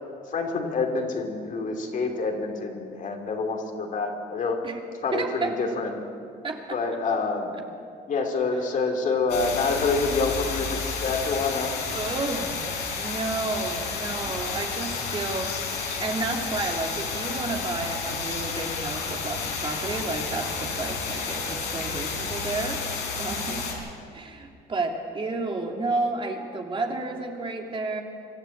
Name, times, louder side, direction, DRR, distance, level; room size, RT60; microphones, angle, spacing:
voice 1, 0.3-4.6 5.0-5.9 6.7-7.5 8.1-11.7 23.5-23.6, left 4 dB, 50° left, 3 dB, 3.0 m, -27 dB
voice 2, 5.1-5.5 6.4-6.8 11.9-12.6 13.0-22.8 23.2-23.7 24.1-28.0, right 3 dB, 30° right, 2 dB, 2.5 m, -31 dB
sound 1, 9.3-23.7, left 5 dB, 80° left, 4.6 m, -31 dB
25.0 x 12.5 x 8.5 m, 2.4 s
cardioid pair, 110°, 17 cm